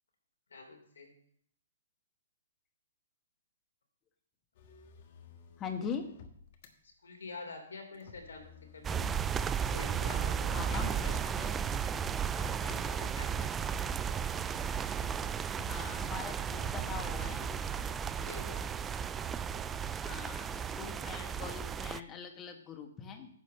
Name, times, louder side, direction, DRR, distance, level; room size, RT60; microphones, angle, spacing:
voice 1, 0.5-1.1 6.8-9.0 9.7-11.4 11.7-13.8 18.2-18.6, left 3 dB, 85° left, 3 dB, 3.3 m, -48 dB
Motor vehicle (road), 4.5-6.7 7.9-11.5 12.6-16.0 16.8-18.8, left 5 dB, 50° left, 1.4 m, -55 dB
voice 2, 5.6-6.0 10.5-10.9 11.3-11.5 15.6-17.5 19.9-23.3, left 6 dB, 20° left, 5 dB, 1.6 m, -42 dB
sound 1, 8.8-22.0, right 7 dB, 15° right, 0.4 m, -34 dB
10.5 x 5.1 x 6.7 m, 0.64 s
hypercardioid pair, 130°, 0 cm